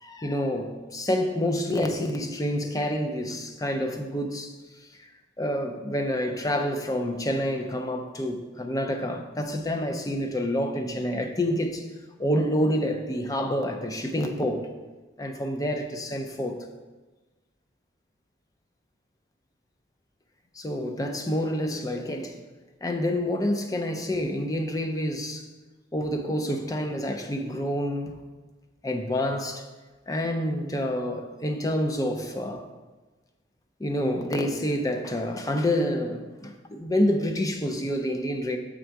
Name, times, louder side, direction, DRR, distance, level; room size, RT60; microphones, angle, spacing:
voice 1, 0.0-4.5 5.0-5.1 5.4-11.8 12.2-14.7 15.2-16.7 20.5-22.4 22.8-25.5 25.9-28.2 28.8-29.7 30.1-32.6 33.8-38.6, left 1 dB, 20° left, 0.5 m, -28 dB
7.1 x 3.8 x 4.6 m
head